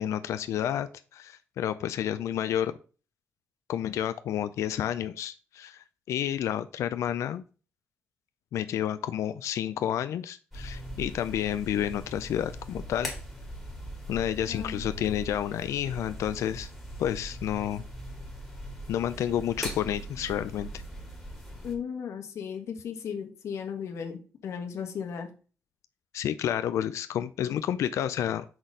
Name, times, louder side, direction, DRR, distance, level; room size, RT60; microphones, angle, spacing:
voice 1, 0.0-2.7 3.7-7.4 8.5-13.1 14.1-16.7 17.0-17.8 18.9-20.7 26.1-28.4, left 10 dB, 90° left, 11 dB, 0.4 m, -30 dB
sound 1, 10.5-21.7, equal, 5° left, 2.2 m, -40 dB
voice 2, 14.5-14.8 21.6-25.3, left 7 dB, 70° left, 4 dB, 1.3 m, -36 dB
6.1 x 4.1 x 4.8 m, 0.36 s
wide cardioid pair, 150°, 5 cm